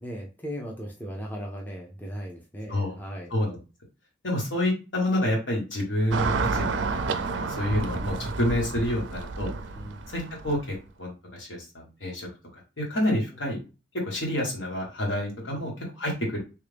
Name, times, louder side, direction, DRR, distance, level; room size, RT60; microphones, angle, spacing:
voice 1, 0.0-3.3 9.7-10.0 13.3-13.4 15.4-15.7, equal, 10° left, -1 dB, 0.5 m, -38 dB
voice 2, 4.2-7.0 7.3-9.5 10.1-12.3 12.8-13.6 14.0-16.4, left 1 dB, 70° left, -2 dB, 1.5 m, -28 dB
Car passing by / Traffic noise roadway noise, 6.1-10.7, right 4 dB, 70° right, 0.4 m, -30 dB
3.3 x 2.5 x 3.4 m, 0.31 s
head